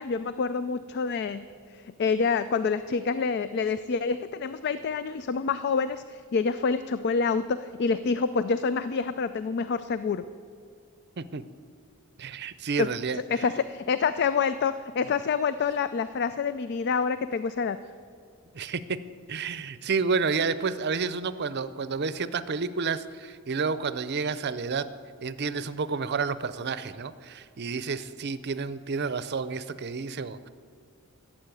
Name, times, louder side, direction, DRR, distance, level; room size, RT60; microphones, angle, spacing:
voice 1, 0.0-1.5 1.7-10.2 12.8-12.9 13.1-17.8, left 5 dB, 50° left, 13 dB, 0.3 m, -27 dB
voice 2, 12.2-13.5 18.5-19.0 19.3-24.9 25.2-30.5, right 5 dB, 50° right, 14 dB, 0.6 m, -30 dB
14.5 x 7.5 x 9.1 m, 2.2 s
head